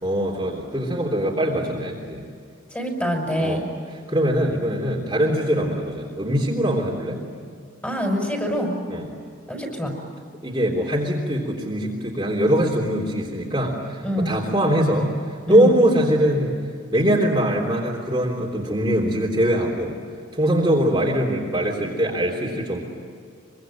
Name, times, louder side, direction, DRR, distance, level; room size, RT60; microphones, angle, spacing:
voice 1, 0.0-2.3 3.4-3.7 4.1-7.2 8.9-9.1 10.4-15.1 15.5-16.6 16.9-19.9 20.3-22.8, equal, 20° right, -3 dB, 3.5 m, -22 dB
voice 2, 2.7-3.6 7.8-8.7 9.5-9.9 14.0-14.4 15.5-15.7, equal, 10° left, 2 dB, 5.8 m, -25 dB
25.5 x 24.5 x 9.2 m, 2.2 s
head